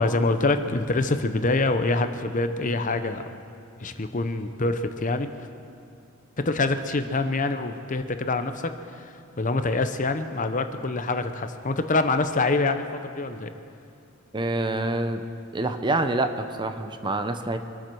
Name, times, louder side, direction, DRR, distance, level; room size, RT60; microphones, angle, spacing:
voice 1, 0.0-3.2 3.8-5.3 6.4-13.5, left 3 dB, 40° left, 9 dB, 0.7 m, -25 dB
voice 2, 14.3-15.2 15.5-17.6, right 2 dB, 20° right, 8 dB, 0.7 m, -26 dB
25.0 x 8.9 x 6.3 m, 2.5 s
head